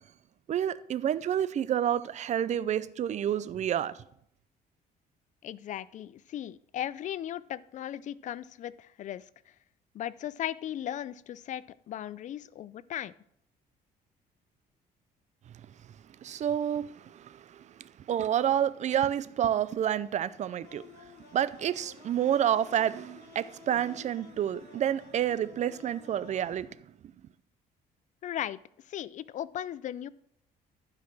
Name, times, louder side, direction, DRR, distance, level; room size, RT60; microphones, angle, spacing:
voice 1, 0.5-3.9 16.2-26.7, right 10 dB, 45° right, 0.5 m, -29 dB
voice 2, 5.4-9.2 9.9-13.1 28.2-28.6 28.9-30.1, left 11 dB, 45° left, 0.4 m, -37 dB
sound 1, 20.6-26.6, left 7 dB, 85° left, 1.4 m, -54 dB
11.5 x 5.0 x 6.0 m
cardioid pair, 110°, 17 cm